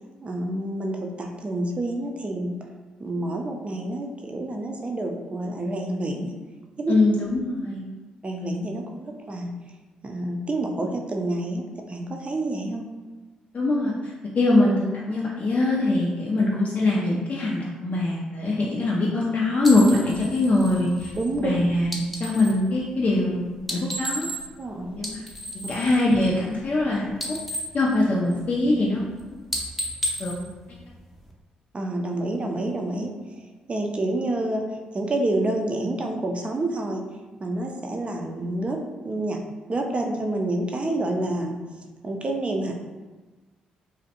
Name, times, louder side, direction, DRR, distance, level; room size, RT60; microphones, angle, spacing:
voice 1, 0.2-2.5 3.0-6.3 6.8-6.9 8.2-9.5 10.0-12.9 21.2-21.6 24.6-25.0 31.7-34.6 34.9-37.0 37.4-38.8 39.0-39.4 39.7-41.6 42.0-42.7, right 1 dB, 35° right, 2 dB, 0.4 m, -28 dB
voice 2, 6.9-7.8 13.5-14.8 15.1-21.1 21.4-24.3 25.0-25.2 25.7-27.1 27.7-29.0 30.2-30.3, left 2 dB, 45° left, -4 dB, 0.4 m, -22 dB
sound 1, 19.6-22.6 23.6-24.7 24.9-26.8 27.1-28.6 29.0-29.2 29.5-31.3, equal, ahead, 0.6 m, -33 dB
2.5 x 2.1 x 2.7 m, 1.2 s
hypercardioid pair, 45°, 3 cm